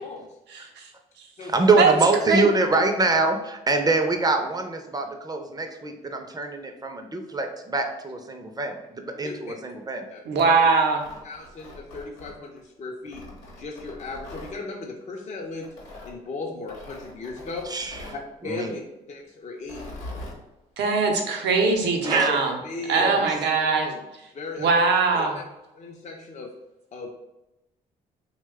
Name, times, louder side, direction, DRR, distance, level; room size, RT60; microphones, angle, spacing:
voice 1, 0.5-0.9 1.8-1.9 2.3-2.5 10.3-11.1 20.8-22.5 22.9-23.9 24.6-25.4, right 4 dB, 70° right, 2 dB, 0.7 m, -21 dB
voice 2, 1.4-10.1 17.7-18.0 18.4-18.7 22.0-22.3 23.0-23.2, right 3 dB, 20° right, 5 dB, 0.5 m, -24 dB
voice 3, 9.2-9.5 10.1-10.2 11.2-13.2 13.6-15.7 16.0-17.7 18.1-18.8 19.1-19.8 22.0-24.0 24.3-24.7 25.1-25.4 25.7-26.5 26.9-27.1, left 3 dB, 40° left, 0 dB, 0.6 m, -36 dB
Tearing, 10.8-12.6 13.1-14.5 15.6-16.1 16.7-18.2 19.6-20.4, left 1 dB, 80° left, 0.8 m, -42 dB
3.0 x 2.2 x 3.4 m, 0.93 s
hypercardioid pair, 50°, 18 cm